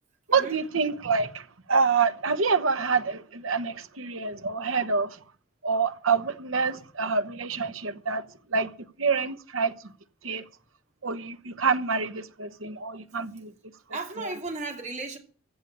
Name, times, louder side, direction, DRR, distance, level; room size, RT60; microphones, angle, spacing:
voice 1, 0.3-1.3 1.7-5.1 5.6-8.2 8.5-8.7 9.0-9.7 10.2-10.4 11.0-13.5, right 5 dB, 80° right, 1.1 m, -26 dB
voice 2, 13.9-15.2, right 3 dB, 35° right, 2.6 m, -35 dB
15.5 x 6.9 x 8.5 m
head